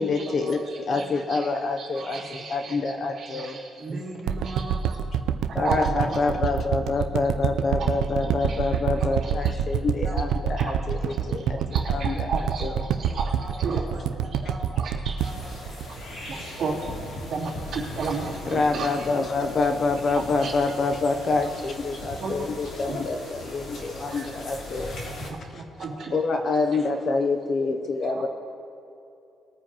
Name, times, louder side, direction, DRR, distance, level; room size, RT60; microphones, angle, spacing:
voice 1, 0.0-0.6 0.9-3.6 5.5-12.8 18.5-25.3 25.5-25.6 26.1-28.3, left 3 dB, 35° left, 5 dB, 0.6 m, -27 dB
voice 2, 0.7-1.5 1.8-4.0 4.4-4.6 5.6-6.2 7.7-7.9 8.2-9.3 10.6-10.7 11.3-11.4 11.7-13.3 13.6-13.8 14.8-15.1 16.2-17.0 17.3-18.9 20.1-20.5 22.1-22.4 22.8-23.0 24.1-24.4 25.5-26.2 28.1-28.3, right 4 dB, 45° right, -6 dB, 3.2 m, -34 dB
voice 3, 1.9-2.3 3.8-4.9 5.5-5.8 10.0-10.2 13.2-15.9 16.1-16.6 19.0-19.1 20.7-20.8 24.0-24.2 25.0-25.1 25.8-26.0, right 2 dB, 20° right, -5 dB, 1.4 m, -41 dB
sound 1, 4.3-16.6 17.0-17.1, right 8 dB, 80° right, 0.5 m, -26 dB
sound 2, 15.2-25.3, left 1 dB, 60° left, 2.7 m, -38 dB
20.5 x 9.2 x 3.0 m, 2.8 s
cardioid pair, 160°, 0 cm